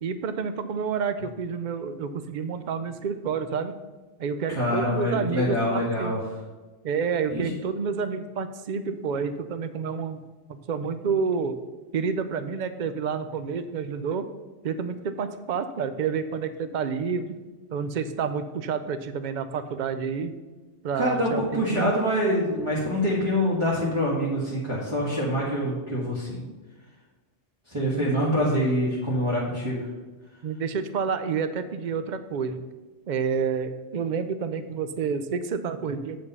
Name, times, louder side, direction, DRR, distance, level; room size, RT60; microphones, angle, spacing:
voice 1, 0.0-3.8 4.2-6.1 6.8-10.2 10.7-11.6 11.9-14.3 14.6-17.4 17.7-20.3 20.8-21.9 27.9-28.1 30.4-32.6 33.1-36.2, right 6 dB, 50° right, 11 dB, 0.6 m, -29 dB
voice 2, 4.5-6.2 7.3-7.5 20.9-26.4 27.7-29.9, equal, 25° right, -7 dB, 1.7 m, -25 dB
8.2 x 5.2 x 5.4 m, 1.2 s
omnidirectional pair, 1.3 m